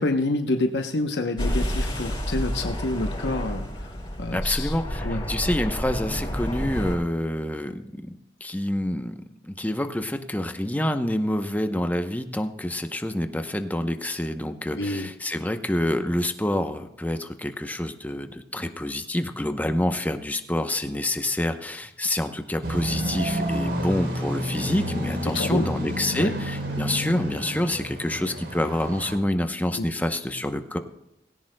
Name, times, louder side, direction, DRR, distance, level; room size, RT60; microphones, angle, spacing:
voice 1, 0.0-3.9 4.2-4.7 5.0-5.2 14.8-15.1 25.3-25.7 26.1-26.3 29.7-29.9, left 2 dB, 75° left, 5 dB, 0.9 m, -28 dB
sound 1, 1.4-7.0, equal, 25° left, 6.1 m, -29 dB
voice 2, 4.3-30.8, left 1 dB, 10° left, 7 dB, 0.8 m, -27 dB
sound 2, 22.6-29.2, equal, 80° right, 3.4 m, -30 dB
18.0 x 17.0 x 2.2 m, 0.85 s
head